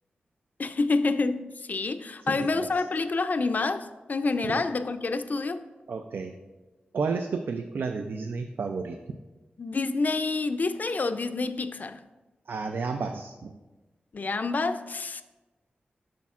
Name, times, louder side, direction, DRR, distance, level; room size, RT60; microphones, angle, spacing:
voice 1, 0.6-5.6 9.6-12.0 14.1-15.2, left 3 dB, 55° left, 10 dB, 0.4 m, -28 dB
voice 2, 2.3-2.7 4.4-4.6 5.9-6.3 6.9-9.0 12.5-13.5, right 4 dB, 75° right, 6 dB, 0.4 m, -31 dB
8.4 x 6.1 x 2.4 m, 1.1 s
cardioid pair, 60°, 3 cm